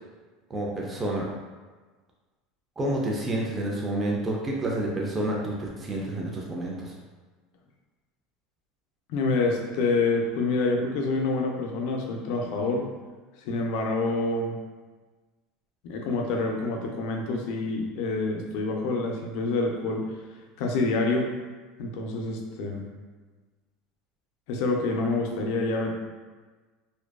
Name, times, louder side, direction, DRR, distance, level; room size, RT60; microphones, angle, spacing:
voice 1, 0.5-1.3 2.8-6.9, right 1 dB, 20° right, -2 dB, 0.4 m, -29 dB
voice 2, 9.1-12.9 13.5-14.6 15.8-20.1 20.6-21.3 21.8-22.9 24.5-25.9, left 3 dB, 70° left, 1 dB, 0.4 m, -27 dB
2.5 x 2.2 x 2.2 m, 1.3 s
supercardioid pair, 130°, 0 cm